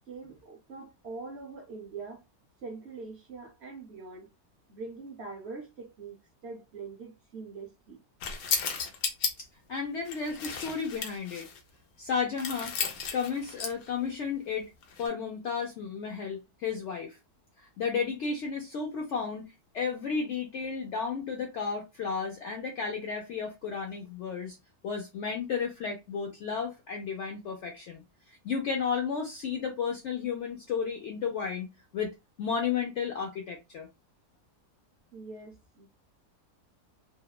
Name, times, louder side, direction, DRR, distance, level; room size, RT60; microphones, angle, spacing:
voice 1, 0.1-2.2 2.6-4.3 4.7-8.0 35.1-35.9, right 4 dB, 60° right, 0.7 m, -43 dB
sound 1, 8.2-9.3 10.0-11.6 12.4-13.9 14.8-15.1, left 6 dB, 90° left, 1.2 m, -34 dB
voice 2, 9.4-11.5 12.0-12.7 13.1-14.7 15.0-17.2 17.6-24.6 24.8-28.0 28.3-32.1 32.4-33.9, left 6 dB, 70° left, 0.7 m, -33 dB
2.8 x 2.1 x 2.2 m
omnidirectional pair, 1.7 m